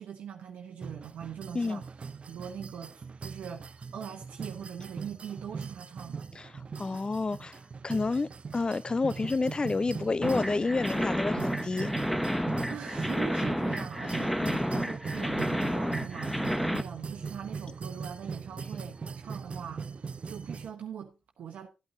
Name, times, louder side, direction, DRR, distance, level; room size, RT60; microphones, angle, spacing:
voice 1, 0.0-1.9 2.3-6.3 12.7-21.7, right 8 dB, 75° right, 0.9 m, -42 dB
sound 1, 0.8-20.7, right 5 dB, 50° right, 0.6 m, -40 dB
voice 2, 6.8-7.6 7.8-11.9 14.4-14.6, left 3 dB, 35° left, 0.5 m, -29 dB
sound 2, 10.2-16.8, equal, 5° left, 1.1 m, -30 dB
12.5 x 8.8 x 2.7 m
supercardioid pair, 45°, 3 cm